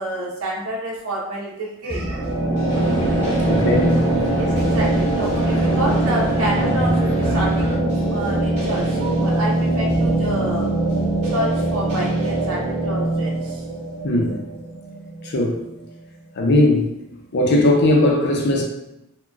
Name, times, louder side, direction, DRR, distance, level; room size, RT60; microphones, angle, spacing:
voice 1, 0.0-2.3 4.3-10.7 11.2-13.6, right 1 dB, 90° right, -4 dB, 0.7 m, -28 dB
sound 1, 1.9-15.6, right 2 dB, 30° right, 1.2 m, -21 dB
sound 2, 2.7-7.8, equal, 25° left, 0.8 m, -32 dB
voice 2, 3.5-4.0 14.0-14.4 15.2-15.7 16.4-16.9 17.3-18.6, left 1 dB, 55° left, 1 dB, 0.5 m, -18 dB
3.8 x 2.1 x 2.3 m, 0.86 s
head